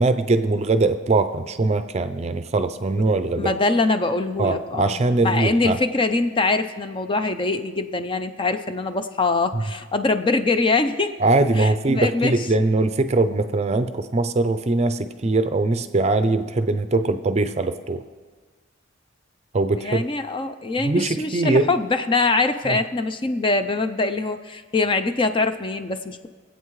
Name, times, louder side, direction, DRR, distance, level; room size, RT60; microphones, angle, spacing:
voice 1, 0.0-3.5 4.4-5.8 9.5-9.6 11.2-18.0 19.5-20.0 20.8-21.7 22.7-22.8, right 2 dB, 35° right, 10 dB, 0.5 m, -21 dB
voice 2, 3.4-11.1 11.6-12.3 19.8-26.3, left 3 dB, 25° left, 9 dB, 0.5 m, -23 dB
23.5 x 8.3 x 3.2 m, 1.4 s
head